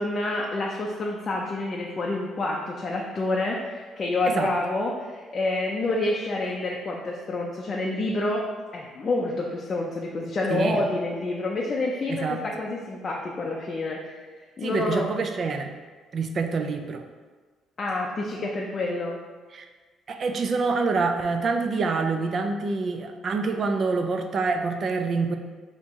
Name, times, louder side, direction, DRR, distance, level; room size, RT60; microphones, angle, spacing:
voice 1, 0.0-8.5 8.7-14.2 14.6-15.1 17.8-19.2, left 2 dB, 30° left, -2 dB, 0.5 m, -28 dB
voice 2, 10.5-10.8 12.1-12.4 14.6-15.7 16.1-17.0 19.5-19.7 20.1-25.4, right 4 dB, 40° right, 5 dB, 0.4 m, -26 dB
4.3 x 2.9 x 3.5 m, 1.4 s
cardioid pair, 135°, 0 cm